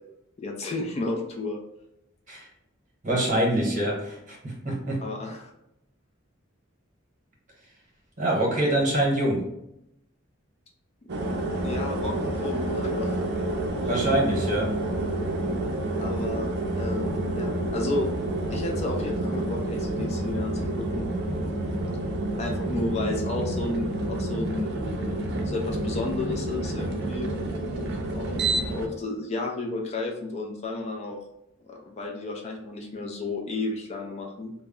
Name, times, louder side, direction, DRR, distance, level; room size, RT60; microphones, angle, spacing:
voice 1, 0.4-1.6 5.0-5.5 11.0-13.2 16.0-18.1 18.5-21.1 22.4-24.7 25.4-27.4 28.1-31.2 31.7-34.5, left 2 dB, 35° left, 1 dB, 0.4 m, -32 dB
voice 2, 3.0-5.0 8.2-9.4 13.9-14.7, right 1 dB, 40° right, -2 dB, 0.9 m, -25 dB
sound 1, 11.1-28.9, right 1 dB, 55° right, 0.5 m, -29 dB
2.1 x 2.0 x 3.6 m, 0.81 s
head